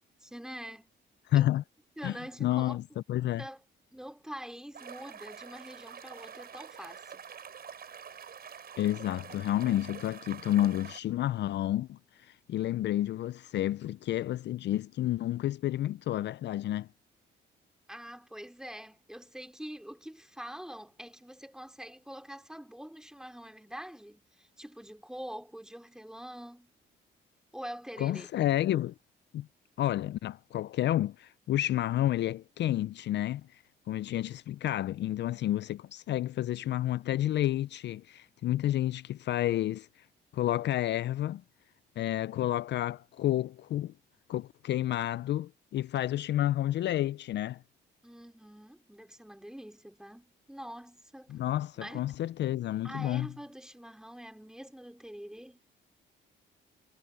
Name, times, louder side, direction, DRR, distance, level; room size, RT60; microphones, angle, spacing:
voice 1, 0.2-0.9 1.3-1.5 2.0-3.0 3.4-3.6 3.9-7.2 17.9-26.7 27.5-28.3 48.0-51.3 51.8-52.1 52.8-55.6, equal, 5° right, 2.9 m, -45 dB
voice 2, 1.3-1.6 2.0-2.8 3.1-3.4 8.8-16.9 28.0-28.9 29.3-29.5 29.8-33.6 33.9-39.9 40.3-41.4 42.0-43.9 44.3-47.6 51.3-53.3, left 13 dB, 65° left, 0.4 m, -30 dB
sound 1, 4.7-11.0, right 7 dB, 50° right, 5.8 m, -47 dB
cardioid pair, 90°, 20 cm